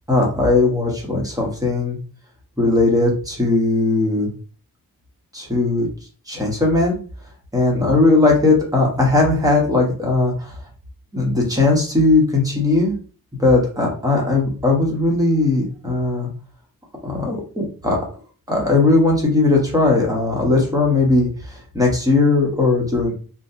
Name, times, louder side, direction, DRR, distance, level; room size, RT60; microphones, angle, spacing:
voice 1, 0.1-2.0 2.6-4.3 5.3-5.9 6.3-7.0 7.5-10.6 11.1-12.9 13.4-16.3 17.0-18.0 18.5-23.1, left 2 dB, 10° right, -2 dB, 1.0 m, -18 dB
4.0 x 2.2 x 2.7 m, 0.39 s
wide cardioid pair, 160°, 37 cm